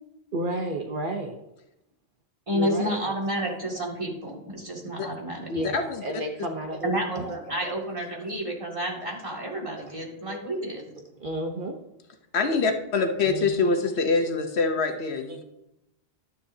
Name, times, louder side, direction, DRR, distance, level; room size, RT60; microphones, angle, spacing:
voice 1, 0.3-1.4 2.5-3.2 5.5-7.3 7.6-7.7 10.3-10.4 11.2-11.7 13.2-13.7 15.3-15.4, right 1 dB, 50° right, 3 dB, 1.0 m, -32 dB
voice 2, 2.5-5.5 6.8-10.9, right 1 dB, 30° right, -3 dB, 2.3 m, -30 dB
voice 3, 12.3-15.4, left 4 dB, 75° left, 6 dB, 1.2 m, -25 dB
11.5 x 9.6 x 2.7 m, 0.90 s
omnidirectional pair, 1.1 m